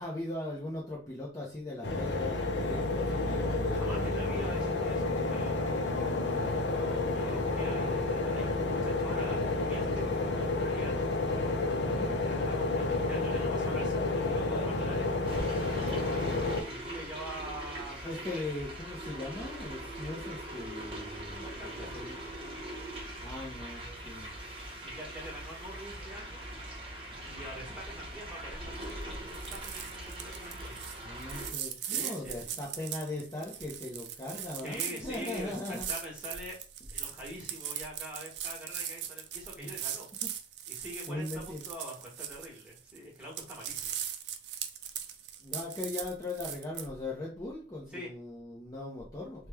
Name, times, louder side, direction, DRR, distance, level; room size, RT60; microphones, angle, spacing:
voice 1, 0.0-4.3 6.1-6.5 11.8-12.1 17.8-21.5 21.8-22.2 23.2-24.3 31.0-35.9 39.6-39.7 40.2-40.3 41.1-41.6 45.4-49.5, left 2 dB, 20° left, -4 dB, 0.6 m, -39 dB
sound 1, 1.8-16.6, left 2 dB, 75° left, 0.6 m, -30 dB
voice 2, 3.7-5.6 6.7-11.1 12.2-15.1 16.6-18.0 18.3-18.4 21.4-22.3 24.7-26.4 27.2-30.7 31.9-32.6 34.5-35.6 35.9-36.6 36.9-40.1 40.7-44.0 47.9-48.1, equal, 5° right, -5 dB, 1.2 m, -45 dB
sound 2, 15.3-31.5, right 1 dB, 30° right, 0.9 m, -42 dB
sound 3, 28.7-29.0 29.3-43.0 43.2-46.9, right 10 dB, 65° right, 0.4 m, -40 dB
3.0 x 2.2 x 3.4 m, 0.38 s
head